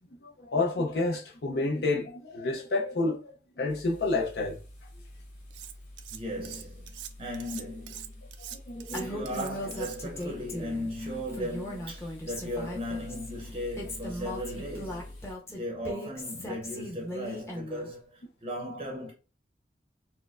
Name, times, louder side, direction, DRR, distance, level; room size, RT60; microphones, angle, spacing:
voice 1, 0.2-4.6 8.5-9.1, left 2 dB, 65° left, 0.5 m, -30 dB
sound 1, 3.7-15.3, left 1 dB, 40° left, 1.7 m, -47 dB
Cutlery silverware, 5.5-6.2 6.4-10.3, right 11 dB, 85° right, 0.3 m, -43 dB
voice 2, 6.1-8.1 8.9-19.1, equal, 30° right, 0.6 m, -37 dB
Female speech woman speaking, 8.9-10.9 11.3-13.3 13.8-17.9, equal, 15° left, 0.7 m, -38 dB
4.3 x 2.1 x 2.4 m
head